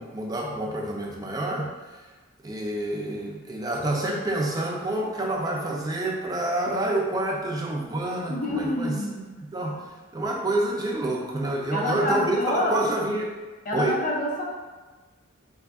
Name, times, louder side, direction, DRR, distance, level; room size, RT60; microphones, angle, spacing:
voice 1, 0.0-1.7 2.4-9.0 9.5-9.8 10.1-13.3 13.7-14.0, right 1 dB, 20° right, -1 dB, 0.3 m, -28 dB
voice 2, 8.3-9.3 11.7-13.1 13.7-14.5, left 1 dB, 40° left, -2 dB, 0.5 m, -27 dB
3.4 x 3.3 x 2.3 m, 1.3 s
head